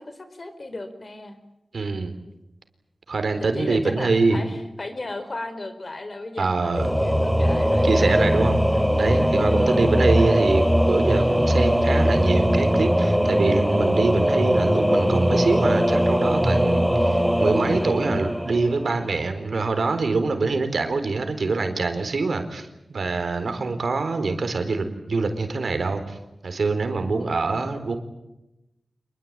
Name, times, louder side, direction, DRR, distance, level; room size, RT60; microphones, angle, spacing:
voice 1, 0.0-1.4 3.4-8.2 9.5-9.8 23.4-23.8, left 2 dB, 50° left, 9 dB, 4.4 m, -36 dB
voice 2, 1.7-2.1 3.1-4.4 6.4-6.9 7.8-8.6 8.9-26.2 26.4-28.0, right 3 dB, 75° right, 8 dB, 4.0 m, -24 dB
Singing / Musical instrument, 6.7-19.3, equal, ahead, 4.1 m, -20 dB
27.0 x 22.0 x 8.9 m, 0.92 s
cardioid pair, 55°, 0 cm